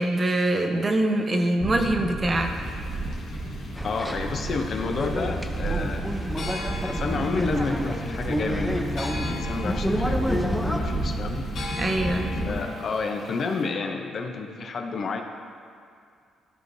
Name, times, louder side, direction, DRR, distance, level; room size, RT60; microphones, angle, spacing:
voice 1, 0.0-2.6 11.8-12.3, right 1 dB, 30° right, 4 dB, 0.7 m, -24 dB
sound 1, 1.6-12.6, right 1 dB, 15° right, 1.3 m, -31 dB
sound 2, 2.4-13.7, left 3 dB, 70° left, 1.6 m, -41 dB
voice 2, 3.8-6.1 6.8-11.4 12.5-15.2, left 4 dB, 50° left, 4 dB, 0.7 m, -30 dB
sound 3, 3.8-10.8, equal, ahead, 0.6 m, -30 dB
13.0 x 4.5 x 2.7 m, 2.3 s
cardioid pair, 90°, 0 cm